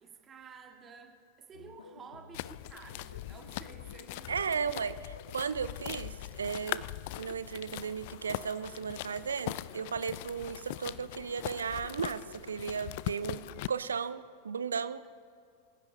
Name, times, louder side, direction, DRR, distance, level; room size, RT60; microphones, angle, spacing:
voice 1, 0.0-4.6, right 5 dB, 25° right, 3 dB, 1.9 m, -52 dB
sound 1, 1.5-13.6, left 4 dB, 70° left, 0.8 m, -53 dB
sound 2, 2.3-13.7, left 18 dB, 50° left, 0.3 m, -41 dB
voice 2, 4.3-6.9 7.2-15.0, right 6 dB, 70° right, 15 dB, 0.5 m, -35 dB
30.0 x 15.5 x 2.9 m, 2.4 s
figure-of-eight pair, 90°, 0 cm